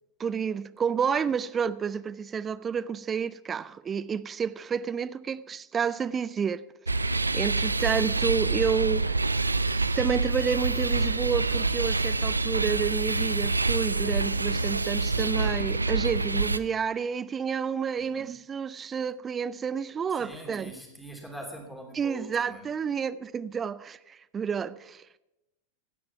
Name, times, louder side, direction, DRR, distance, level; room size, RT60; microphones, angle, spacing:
voice 1, 0.2-9.4 10.0-20.7 21.9-25.0, right 7 dB, 20° right, 0.5 m, -30 dB
sound 1, 6.9-16.6, right 3 dB, 80° right, 0.4 m, -26 dB
voice 2, 20.1-22.7, equal, ahead, 3.0 m, -43 dB
16.5 x 9.5 x 5.7 m
figure-of-eight pair, 90°, 0 cm